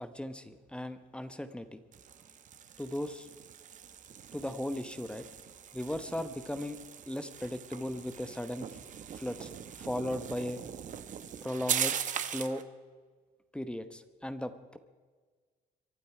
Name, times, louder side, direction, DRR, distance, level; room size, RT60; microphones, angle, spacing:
voice 1, 0.0-1.8 2.8-3.3 4.3-5.2 5.7-6.8 7.1-8.7 9.1-9.5 9.8-10.6 11.4-12.0 12.3-12.6 13.5-14.8, left 1 dB, 5° left, 10 dB, 1.0 m, -37 dB
sound 1, 1.9-12.6, right 9 dB, 50° right, 1.0 m, -40 dB
23.5 x 12.0 x 4.9 m, 1.5 s
cardioid pair, 110°, 17 cm